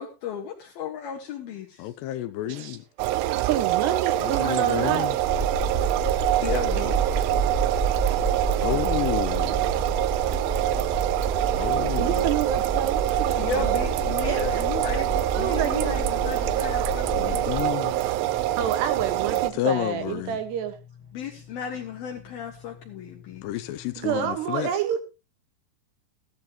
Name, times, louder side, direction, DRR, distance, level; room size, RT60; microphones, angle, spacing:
voice 1, 0.0-1.9 6.4-7.3 13.4-17.8 19.2-19.4 21.1-23.5, left 6 dB, 65° left, 2.9 m, -34 dB
voice 2, 1.8-2.8 4.2-5.2 8.6-9.9 11.6-12.2 17.0-18.0 19.5-20.4 23.4-24.7, left 13 dB, 80° left, 2.5 m, -30 dB
voice 3, 2.5-2.8 3.0-5.1 10.2-10.8 12.0-13.9 14.3-14.5 15.1-16.1 18.6-20.8 24.0-25.0, right 9 dB, 70° right, 3.4 m, -29 dB
sound 1, 3.0-19.5, right 15 dB, 85° right, 3.2 m, -25 dB
sound 2, 5.2-17.6, right 3 dB, 15° right, 1.1 m, -29 dB
sound 3, 17.4-24.4, left 7 dB, 45° left, 1.7 m, -50 dB
15.5 x 12.0 x 3.0 m
omnidirectional pair, 5.4 m